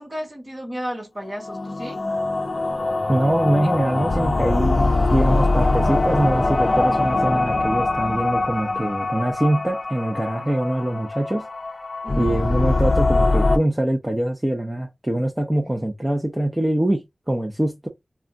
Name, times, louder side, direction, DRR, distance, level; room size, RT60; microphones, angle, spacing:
voice 1, 0.0-2.0 12.0-12.4 15.7-15.8, equal, 35° right, 1.2 m, -33 dB
sound 1, 1.3-13.6, left 2 dB, 50° left, 0.4 m, -22 dB
voice 2, 3.1-11.5 12.2-17.9, right 1 dB, 15° right, 0.6 m, -23 dB
2.4 x 2.2 x 3.6 m
wide cardioid pair, 55°, 0 cm